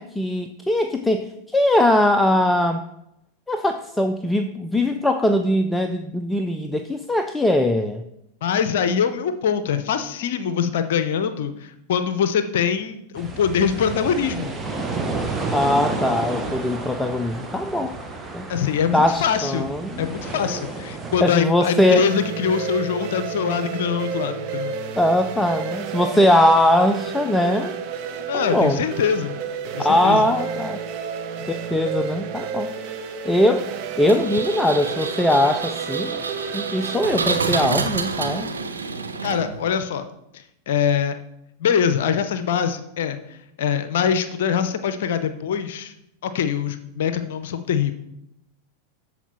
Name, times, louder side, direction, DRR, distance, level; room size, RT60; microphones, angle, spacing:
voice 1, 0.0-2.8 3.5-8.0 15.5-18.0 18.3-18.5 18.9-20.1 21.2-22.1 25.0-27.8 28.5-28.9 29.8-30.8 31.5-32.7 33.3-33.7 34.0-36.2 36.5-38.5, left 1 dB, 5° left, 7 dB, 0.4 m, -21 dB
voice 2, 8.4-14.5 18.5-19.7 20.0-24.7 28.3-29.4 29.7-30.2 39.2-40.0 40.3-41.1 41.6-43.2 43.6-45.9 46.2-47.9, left 7 dB, 55° left, 11 dB, 0.6 m, -23 dB
sound 1, 13.2-21.2, right 3 dB, 15° right, 1.0 m, -31 dB
sound 2, 21.8-37.5, right 6 dB, 40° right, 0.8 m, -31 dB
Engine, 34.1-39.8, right 4 dB, 75° right, 0.8 m, -28 dB
13.0 x 4.4 x 4.2 m, 0.81 s
figure-of-eight pair, 90°, 0 cm